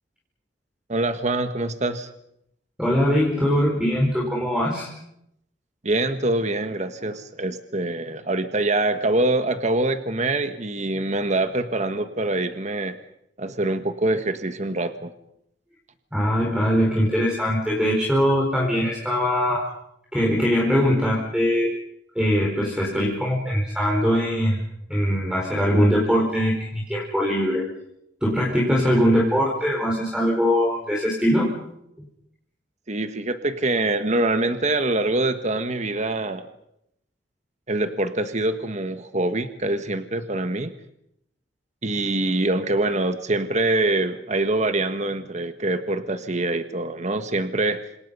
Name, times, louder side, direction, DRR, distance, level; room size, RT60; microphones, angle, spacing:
voice 1, 0.9-2.1 5.8-13.0 13.4-15.1 32.9-36.5 37.7-40.7 41.8-47.9, right 2 dB, 40° right, 9 dB, 1.5 m, -24 dB
voice 2, 2.8-4.9 16.1-19.7 20.1-21.7 22.1-24.6 24.9-27.7 28.2-31.5, equal, 5° right, -3 dB, 4.9 m, -21 dB
29.0 x 27.0 x 5.6 m, 0.78 s
head